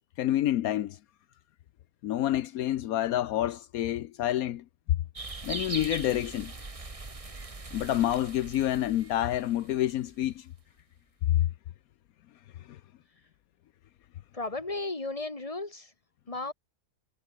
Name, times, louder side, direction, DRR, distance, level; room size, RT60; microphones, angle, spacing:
voice 1, 0.2-1.0 2.0-4.6 5.4-6.5 7.7-10.5 11.3-11.5 12.6-12.8, left 13 dB, 80° left, 1.1 m, -28 dB
sound 1, 5.1-10.2, right 3 dB, 25° right, 1.6 m, -41 dB
voice 2, 14.3-15.9 16.3-16.5, left 2 dB, 25° left, 2.6 m, -34 dB
omnidirectional pair, 1.5 m